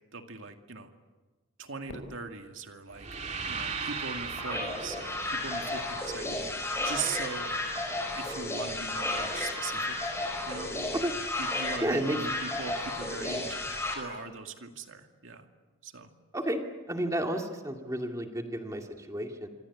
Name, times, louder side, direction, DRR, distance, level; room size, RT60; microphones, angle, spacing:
voice 1, 0.1-0.9 1.6-3.1 3.5-6.3 6.8-7.5 8.1-10.0 10.5-10.7 11.4-13.6 13.9-15.4 15.8-16.1, right 5 dB, 65° right, 5 dB, 2.3 m, -40 dB
Fireworks, 1.9-4.2, left 1 dB, 75° left, 6.1 m, -51 dB
sound 1, 2.9-7.0, right 5 dB, 35° right, 3.0 m, -38 dB
sound 2, 4.4-13.9, left 2 dB, 15° left, 5.0 m, -33 dB
voice 2, 11.8-12.2 16.3-19.5, right 1 dB, 15° right, 3 dB, 2.4 m, -31 dB
26.5 x 25.5 x 8.5 m, 1.3 s
head